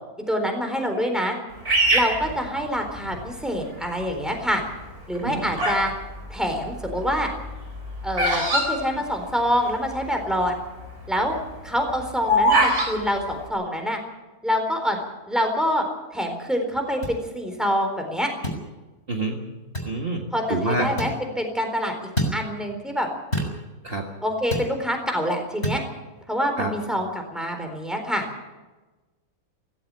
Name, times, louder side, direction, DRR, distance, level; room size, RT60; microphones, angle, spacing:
voice 1, 0.3-1.4 1.9-4.6 5.1-5.9 6.3-7.3 8.0-10.5 11.1-11.4 11.6-14.0 14.4-15.0 15.3-15.8 16.1-18.3 20.3-21.9 22.3-23.1 24.2-25.8 26.3-28.2, equal, ahead, 4 dB, 4.0 m, -26 dB
Bird vocalization bird call bird song, 1.6-3.2 3.8-4.2 5.0-5.9 6.2-9.7 10.0-10.1 10.2-10.6 11.0-12.9, equal, 80° right, 5.0 m, -23 dB
sound 1, 17.0-17.2 18.4-18.6 19.7-19.9 21.0-21.2 22.2-22.4 23.3-23.6 24.5-24.7 25.6-25.8, equal, 45° left, 5.5 m, -27 dB
voice 2, 19.1-19.4 19.8-20.2 20.5-20.9 23.8-24.0 26.6-26.7, right 2 dB, 40° right, 1 dB, 2.0 m, -26 dB
16.5 x 16.5 x 9.9 m, 1.2 s
omnidirectional pair, 1.5 m